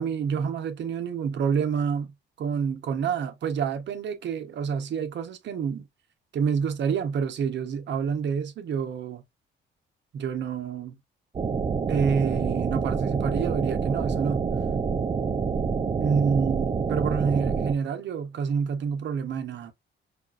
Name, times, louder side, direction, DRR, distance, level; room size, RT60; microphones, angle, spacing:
voice 1, 0.0-2.1 2.4-5.8 6.3-9.2 10.1-10.9 11.9-14.5 16.0-19.7, right 6 dB, 65° right, 0.9 m, -28 dB
sound 1, 11.3-17.7, right 5 dB, 25° right, 0.4 m, -27 dB
5.1 x 2.4 x 2.4 m
cardioid pair, 90°, 20 cm